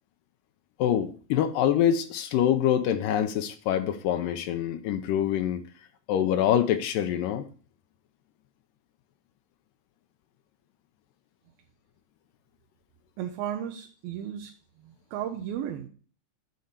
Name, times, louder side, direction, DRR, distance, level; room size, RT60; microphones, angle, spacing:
voice 1, 0.8-5.6 6.1-7.4, left 10 dB, 80° left, 2.2 m, -25 dB
voice 2, 13.2-14.5 14.8-15.9, right 10 dB, 85° right, 2.6 m, -34 dB
9.5 x 4.2 x 6.6 m
omnidirectional pair, 4.2 m